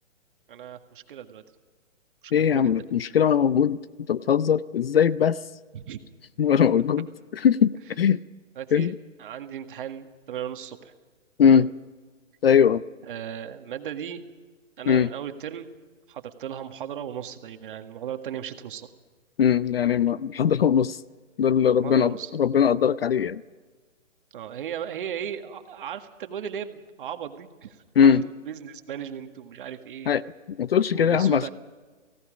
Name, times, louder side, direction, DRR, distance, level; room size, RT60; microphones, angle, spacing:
voice 1, 0.5-1.4 2.2-2.9 5.7-6.0 8.6-8.9 9.2-10.9 11.5-11.7 13.1-14.2 14.8-15.7 16.1-18.9 21.8-22.3 24.3-30.1 30.9-31.5, right 9 dB, 45° right, 6 dB, 1.8 m, -36 dB
voice 2, 2.3-3.8 4.1-5.4 6.4-7.1 7.4-7.7 8.0-8.2 8.7-8.9 11.4-11.7 12.4-12.8 14.9-15.1 19.4-21.0 21.4-23.4 28.0-28.2 30.1-30.2 30.5-31.5, left 8 dB, 50° left, 18 dB, 0.6 m, -20 dB
29.5 x 17.5 x 5.1 m, 1.4 s
hypercardioid pair, 160°, 38 cm